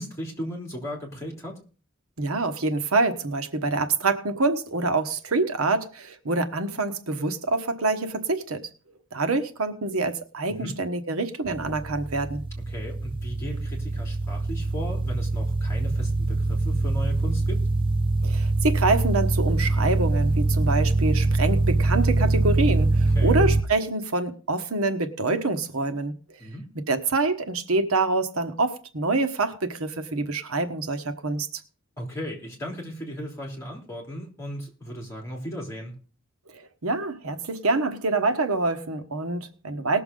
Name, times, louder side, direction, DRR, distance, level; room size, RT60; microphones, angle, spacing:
voice 1, 0.0-1.6 10.5-10.8 12.7-17.6 23.1-23.4 26.4-26.7 32.0-35.9, equal, 15° left, -1 dB, 3.3 m, -36 dB
voice 2, 2.2-8.6 9.1-12.4 18.2-26.1 26.9-31.5 36.5-40.0, right 3 dB, 90° right, 8 dB, 1.2 m, -26 dB
sound 1, 11.5-23.6, right 2 dB, 25° right, 0.5 m, -24 dB
19.5 x 6.9 x 3.8 m, 0.37 s
head